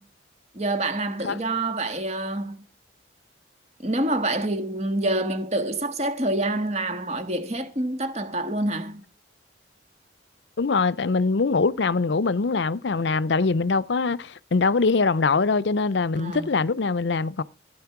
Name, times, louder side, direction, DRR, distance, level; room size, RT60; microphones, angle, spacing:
voice 1, 0.5-2.6 3.8-9.0 16.2-16.5, right 1 dB, 35° right, 1.7 m, -27 dB
voice 2, 10.6-17.4, left 4 dB, 70° left, 0.6 m, -23 dB
15.5 x 10.0 x 5.9 m
head